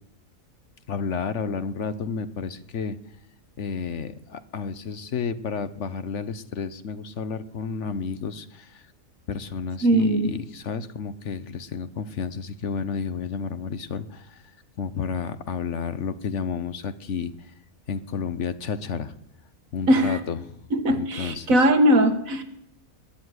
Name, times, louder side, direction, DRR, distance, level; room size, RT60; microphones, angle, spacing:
voice 1, 0.9-3.0 3.6-8.8 9.3-14.4 14.8-17.3 17.9-19.1 19.7-20.4 20.9-21.6, left 6 dB, 60° left, 13 dB, 1.2 m, -31 dB
voice 2, 9.8-10.3 19.9-20.2 20.7-22.4, right 1 dB, 70° right, 8 dB, 1.9 m, -20 dB
21.0 x 7.0 x 9.6 m, 0.75 s
omnidirectional pair, 1.5 m